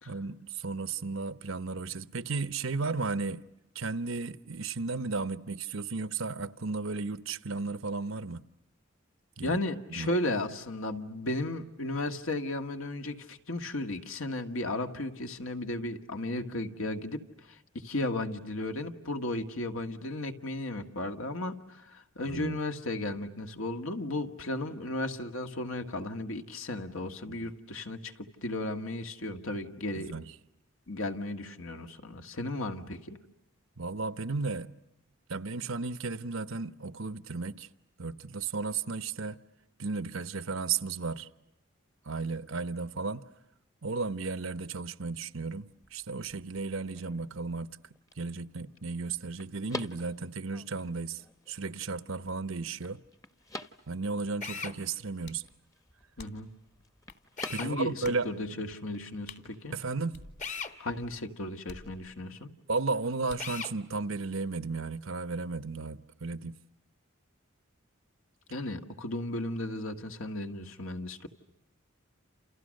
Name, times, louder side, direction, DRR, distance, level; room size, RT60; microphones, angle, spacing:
voice 1, 0.1-3.4 3.7-8.4 9.4-9.6 10.0-10.1 22.3-22.6 27.0-27.5 29.9-30.3 33.8-34.7 35.3-37.7 38.0-39.4 39.8-41.3 42.1-43.2 43.8-47.8 48.2-51.2 51.5-53.0 53.9-55.4 57.5-58.3 59.7-60.2 62.7-66.6, right 4 dB, 75° right, 0.9 m, -34 dB
voice 2, 9.4-30.1 30.9-33.2 56.2-56.5 57.6-59.7 60.8-62.5 68.5-71.3, left 2 dB, 80° left, 2.0 m, -35 dB
sound 1, 45.7-61.2, left 2 dB, 15° left, 1.0 m, -49 dB
Drill, 54.4-54.8 57.4-57.7 60.4-60.7 63.4-63.7, left 5 dB, 35° left, 1.3 m, -37 dB
sound 2, 55.3-55.5 56.2-56.6 57.1-57.2 58.0-58.3 59.3-59.5 60.1-60.8 61.7-62.4 63.3-63.6, left 3 dB, 50° left, 3.1 m, -49 dB
29.5 x 29.0 x 6.6 m
head